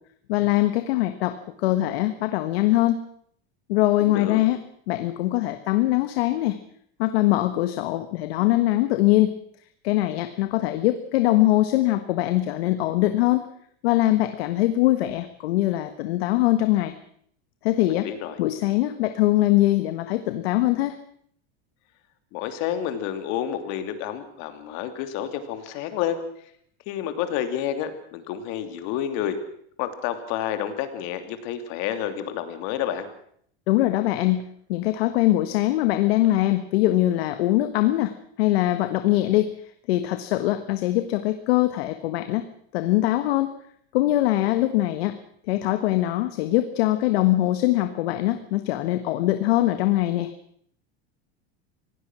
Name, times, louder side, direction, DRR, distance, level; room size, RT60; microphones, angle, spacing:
voice 1, 0.3-3.0 3.7-4.6 4.9-6.6 7.0-9.3 9.8-13.4 13.8-16.9 17.6-18.1 18.4-20.9 33.7-34.4 34.7-39.5 39.9-42.4 42.7-43.5 43.9-45.2 45.5-50.3, left 16 dB, 75° left, 9 dB, 1.5 m, -22 dB
voice 2, 4.1-4.4 17.9-18.4 22.3-26.5 26.9-29.4 29.8-33.1, left 10 dB, 55° left, 8 dB, 2.9 m, -29 dB
25.0 x 17.0 x 6.3 m, 0.64 s
supercardioid pair, 145°, 31 cm